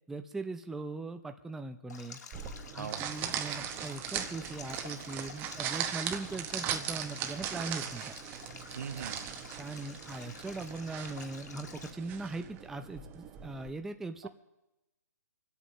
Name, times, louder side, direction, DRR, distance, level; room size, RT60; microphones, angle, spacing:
voice 1, 0.1-2.2 2.7-8.1 9.6-14.3, right 3 dB, 5° right, 7 dB, 0.4 m, -40 dB
Stream, 1.9-11.9, left 5 dB, 75° left, 1.6 m, -50 dB
sound 1, 2.3-13.7, right 9 dB, 20° right, 0.9 m, -39 dB
voice 2, 2.8-3.1 8.7-9.3 14.2-14.3, right 7 dB, 80° right, 9 dB, 1.2 m, -41 dB
24.5 x 8.4 x 6.2 m, 0.96 s
hypercardioid pair, 150°, 9 cm